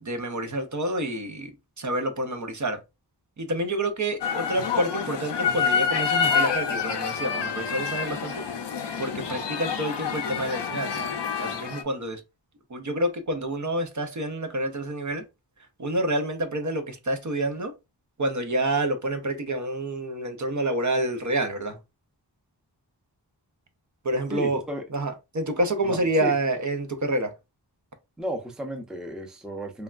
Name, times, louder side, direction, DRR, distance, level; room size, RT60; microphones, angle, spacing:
voice 1, 0.0-2.8 3.4-8.4 9.0-11.1 11.4-12.2 12.7-15.2 15.8-17.7 18.2-21.8 24.0-24.6 24.9-27.3, right 1 dB, 45° right, 0.6 m, -28 dB
sound 1, 4.2-11.8, left 6 dB, 80° left, 0.6 m, -27 dB
voice 2, 24.3-24.8 25.8-26.3 28.2-29.8, equal, ahead, 0.5 m, -33 dB
3.3 x 2.2 x 2.4 m
wide cardioid pair, 70°, 42 cm